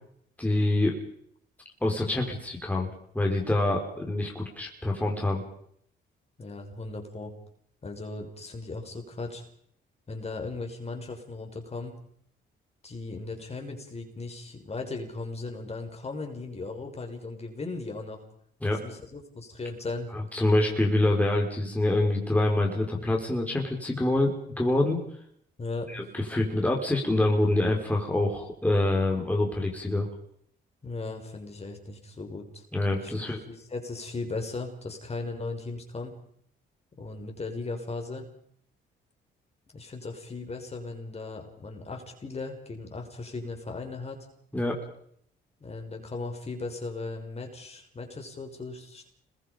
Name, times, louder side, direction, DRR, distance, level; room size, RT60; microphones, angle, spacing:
voice 1, 0.4-1.0 1.8-2.9 3.1-5.4 18.6-18.8 20.1-25.0 25.9-30.1 32.7-33.4 44.5-44.8, left 1 dB, 5° left, 0 dB, 5.0 m, -26 dB
voice 2, 6.4-7.3 7.8-9.4 10.1-12.0 12.8-18.2 18.8-20.1 25.6-26.0 30.8-32.6 33.0-36.2 37.0-38.3 39.7-44.3 45.6-49.1, left 3 dB, 30° left, 3 dB, 5.9 m, -37 dB
30.0 x 22.0 x 5.3 m, 0.68 s
cardioid pair, 90°, 20 cm